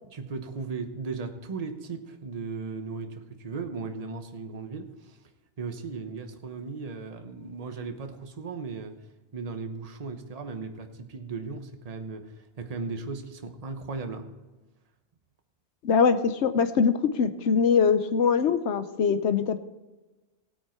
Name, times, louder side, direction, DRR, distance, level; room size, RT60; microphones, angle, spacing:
voice 1, 0.1-5.2 5.6-8.9 9.3-14.3, right 4 dB, 35° right, 6 dB, 1.0 m, -36 dB
voice 2, 15.8-19.6, left 6 dB, 80° left, 11 dB, 1.1 m, -23 dB
16.5 x 8.9 x 4.5 m, 1.2 s
omnidirectional pair, 1.1 m